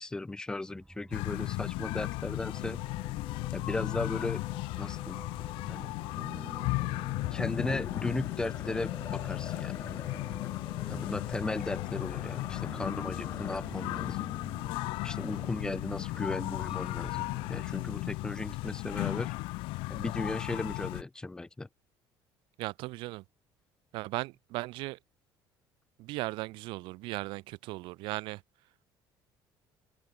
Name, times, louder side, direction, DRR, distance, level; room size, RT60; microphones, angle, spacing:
voice 1, 0.0-2.8 3.5-4.4 4.8-5.2 5.7-5.9 7.3-10.1 10.9-14.3 15.0-19.3 19.9-21.7, left 2 dB, 10° left, 1.2 m, -36 dB
sound 1, 0.7-17.7, right 2 dB, 5° right, 1.6 m, -49 dB
sound 2, 1.1-21.0, left 23 dB, 85° left, 0.5 m, -36 dB
sound 3, 7.1-17.6, left 8 dB, 30° left, 1.4 m, -46 dB
voice 2, 22.6-23.2 23.9-25.0 26.0-28.4, right 21 dB, 75° right, 1.2 m, -37 dB
cardioid pair, 170°, 9 cm